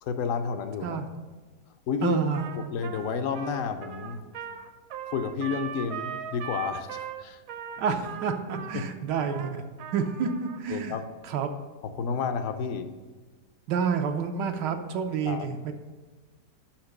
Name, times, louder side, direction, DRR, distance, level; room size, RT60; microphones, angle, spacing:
voice 1, 0.0-1.0 1.9-2.2 2.7-4.2 5.1-7.4 8.7-8.8 10.7-11.0 11.8-12.9 15.3-15.5, left 6 dB, 70° left, 9 dB, 0.8 m, -30 dB
voice 2, 2.0-2.7 7.8-9.6 9.9-11.0 11.3-11.5 13.7-15.7, right 6 dB, 90° right, 5 dB, 1.3 m, -29 dB
Trumpet, 2.3-10.6, right 7 dB, 65° right, 1.0 m, -39 dB
5.9 x 5.7 x 6.4 m, 1.3 s
omnidirectional pair, 1.8 m